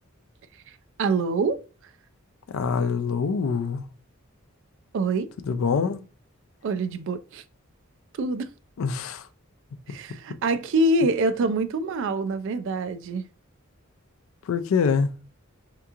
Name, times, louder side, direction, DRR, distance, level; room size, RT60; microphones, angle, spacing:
voice 1, 1.0-1.6 4.9-5.3 6.6-7.4 8.2-8.5 9.9-13.3, right 2 dB, 60° right, 0.3 m, -25 dB
voice 2, 2.5-3.8 5.4-6.0 8.8-9.3 9.9-10.0 14.5-15.1, left 5 dB, 65° left, 0.4 m, -25 dB
3.5 x 2.8 x 2.4 m
head